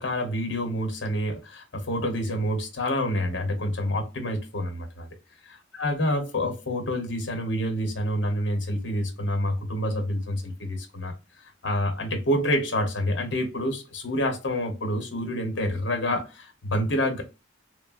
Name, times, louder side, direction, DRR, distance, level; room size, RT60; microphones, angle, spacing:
voice 1, 0.0-5.1 5.5-11.1 11.6-17.2, left 1 dB, 65° left, 0.9 m, -28 dB
3.2 x 2.1 x 2.3 m
head